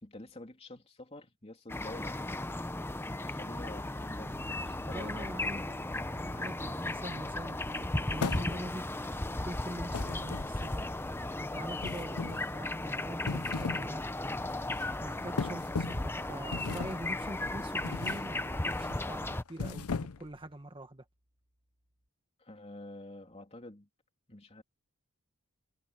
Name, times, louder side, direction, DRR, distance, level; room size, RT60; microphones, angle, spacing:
voice 1, 0.0-2.7 3.0-4.3 4.6-5.5 22.4-23.9 24.3-24.6, left 1 dB, 25° left, 3.3 m, -48 dB
sound 1, 1.7-19.4, left 2 dB, 10° left, 0.6 m, -36 dB
sound 2, 4.2-20.6, equal, 50° right, 3.1 m, -55 dB
voice 2, 4.8-5.7 6.1-10.8 11.4-14.1 15.0-21.0, right 1 dB, 25° right, 1.7 m, -44 dB
sound 3, 8.2-8.9 9.9-10.8 11.8-12.5 13.1-13.9 14.3-14.5 15.4-16.1 16.5-17.1 17.8-18.3 18.7-19.0 19.5-20.4, left 4 dB, 80° left, 0.7 m, -37 dB
head